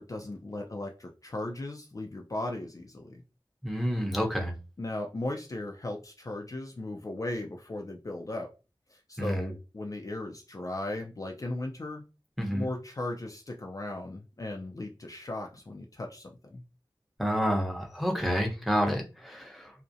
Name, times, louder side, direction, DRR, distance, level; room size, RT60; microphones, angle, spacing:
voice 1, 0.0-3.2 4.8-8.5 8.9-12.0 12.5-16.6, left 2 dB, 40° left, 2 dB, 0.4 m, -37 dB
voice 2, 3.6-4.5 9.2-9.5 12.4-12.7 17.2-19.7, equal, ahead, 1 dB, 0.7 m, -29 dB
2.4 x 2.0 x 2.6 m, 0.31 s
wide cardioid pair, 50°, 9 cm